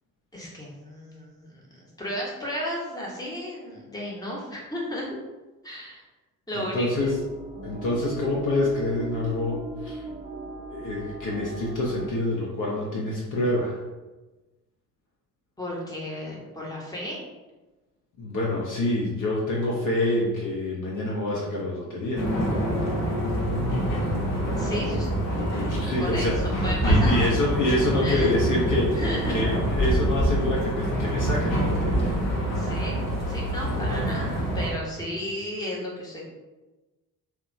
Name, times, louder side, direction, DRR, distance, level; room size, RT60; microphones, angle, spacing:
voice 1, 0.3-5.1 5.6-6.0 6.5-6.9 15.6-17.2 24.6-25.1 25.4-27.3 28.0-28.3 28.9-29.3 32.5-36.3, equal, 10° left, -4 dB, 0.9 m, -34 dB
voice 2, 6.5-7.2 7.6-10.0 10.7-13.8 18.2-22.3 25.5-32.2, left 1 dB, 45° left, -4 dB, 0.7 m, -27 dB
sound 1, 6.9-12.1, right 3 dB, 40° right, 0.6 m, -38 dB
sound 2, 22.1-34.7, equal, 70° left, 0.9 m, -26 dB
2.7 x 2.2 x 2.6 m, 1.1 s
hypercardioid pair, 45°, 44 cm